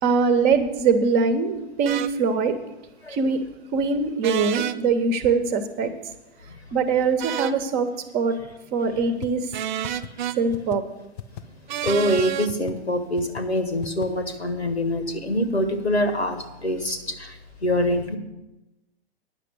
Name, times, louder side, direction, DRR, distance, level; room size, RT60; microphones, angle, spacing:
voice 1, 0.0-2.6 3.1-3.4 3.7-5.9 6.7-7.9 8.1-8.4 8.7-9.5 10.4-10.8, right 5 dB, 30° right, 9 dB, 1.0 m, -22 dB
sound 1, 1.9-2.1 4.2-4.8 7.2-7.6 9.5-10.4 11.7-12.5, right 11 dB, 50° right, 0.5 m, -28 dB
sound 2, 9.2-9.3 9.5-9.6 9.8-10.1 10.5-10.8 11.2-11.4 11.8-11.9 12.2-12.3 12.5-12.7 13.2-13.4 13.8-14.1, left 12 dB, 30° left, 0.4 m, -35 dB
voice 2, 11.8-18.2, equal, 85° left, 7 dB, 1.6 m, -25 dB
9.8 x 6.8 x 8.1 m, 0.96 s
figure-of-eight pair, 105°, 32 cm